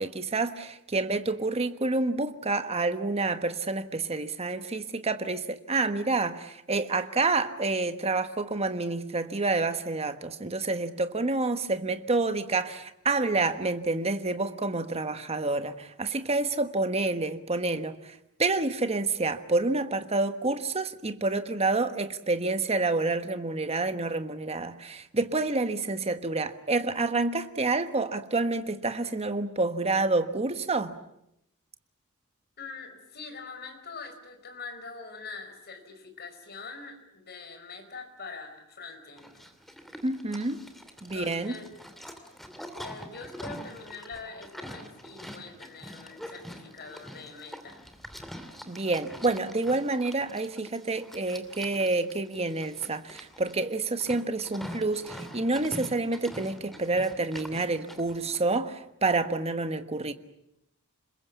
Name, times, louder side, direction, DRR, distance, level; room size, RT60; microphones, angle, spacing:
voice 1, 0.0-31.0 40.0-40.6 41.0-41.5 48.7-60.1, right 3 dB, 30° right, 1.3 m, -28 dB
voice 2, 32.6-39.5 41.1-41.7 42.8-47.8, left 4 dB, 50° left, 4.8 m, -43 dB
Livestock farm animals working animals, 39.2-58.4, equal, ahead, 2.6 m, -45 dB
27.0 x 21.5 x 8.3 m
head